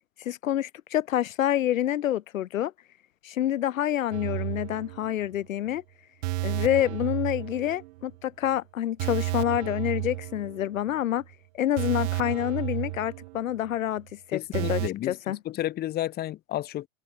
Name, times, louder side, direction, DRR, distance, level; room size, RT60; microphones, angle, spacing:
voice 1, 0.2-2.7 3.2-5.8 6.4-11.2 11.5-14.8 15.1-15.4, left 12 dB, 75° left, 1.5 m, -27 dB
sound 1, 4.1-5.4 5.7-5.8 6.2-8.2 8.4-8.6 9.0-10.9 11.2-11.3 11.8-13.7 14.0-14.1 14.5-14.9, right 20 dB, 55° right, 2.0 m, -32 dB
voice 2, 14.3-15.2 15.4-16.9, left 13 dB, 25° left, 0.9 m, -31 dB
hypercardioid pair, 115°, 41 cm